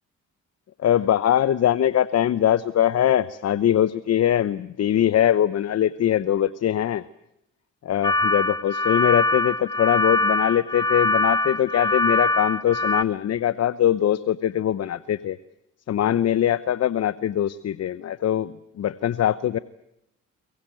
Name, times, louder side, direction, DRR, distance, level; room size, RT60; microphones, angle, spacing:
voice 1, 0.8-7.0 7.8-15.4 15.9-19.6, left 11 dB, 55° left, 16 dB, 0.9 m, -22 dB
sound 1, 8.0-13.0, left 2 dB, 15° left, 0.9 m, -23 dB
23.5 x 21.0 x 9.1 m, 0.81 s
cardioid pair, 90°, 30 cm